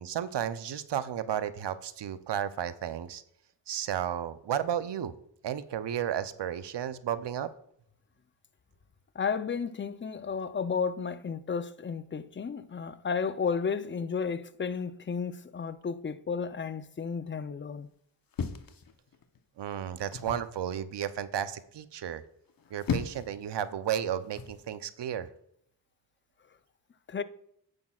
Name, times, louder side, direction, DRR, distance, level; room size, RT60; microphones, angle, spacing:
voice 1, 0.0-3.2 3.7-5.1 5.4-7.5 19.6-22.2 22.7-25.3, right 9 dB, 65° right, 0.7 m, -33 dB
voice 2, 9.1-17.9 27.1-27.2, left 6 dB, 25° left, 0.5 m, -33 dB
sound 1, 18.3-19.4 20.1-20.5 22.5-23.4 24.3-24.6, left 6 dB, 50° left, 0.8 m, -35 dB
9.9 x 8.5 x 2.4 m
cardioid pair, 50°, 44 cm